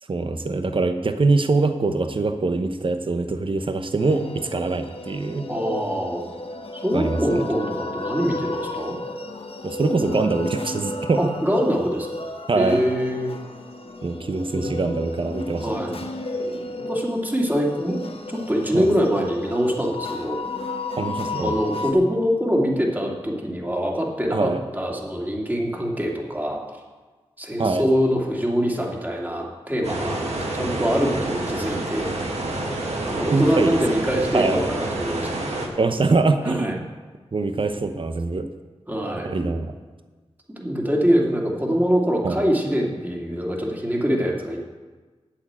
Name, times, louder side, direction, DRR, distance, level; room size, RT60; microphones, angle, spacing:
voice 1, 0.1-5.4 6.9-7.4 9.6-11.2 12.5-12.8 14.0-15.8 18.7-18.9 21.0-21.5 24.3-24.6 27.6-27.8 33.3-33.8 34.3-34.6 35.8-36.9 37.3-38.5 39.2-39.7 42.2-42.4, right 3 dB, 50° right, 8 dB, 0.9 m, -23 dB
sound 1, 4.0-21.9, left 2 dB, 60° left, 1.1 m, -33 dB
voice 2, 5.5-6.3 6.7-9.0 11.1-12.1 12.5-13.3 14.5-14.8 15.6-15.9 16.9-20.4 21.4-26.6 27.4-32.1 33.0-35.3 36.4-36.8 38.9-39.3 40.6-44.6, equal, 15° right, -1 dB, 2.6 m, -24 dB
sound 2, 29.8-35.7, right 2 dB, 90° right, 1.9 m, -28 dB
8.7 x 7.4 x 8.9 m, 1.3 s
cardioid pair, 55°, 11 cm